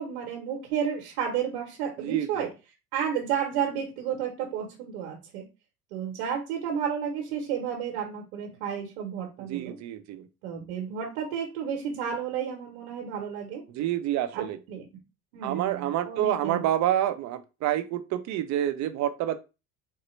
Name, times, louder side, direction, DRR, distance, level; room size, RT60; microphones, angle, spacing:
voice 1, 0.0-2.5 2.9-5.4 5.9-9.8 10.4-13.6 14.3-14.9 15.3-16.6, right 8 dB, 85° right, 0 dB, 1.1 m, -32 dB
voice 2, 2.0-2.5 9.5-10.3 13.7-14.6 15.4-19.4, right 12 dB, 55° right, 10 dB, 0.6 m, -28 dB
4.1 x 2.1 x 3.2 m, 0.28 s
supercardioid pair, 85°, 33 cm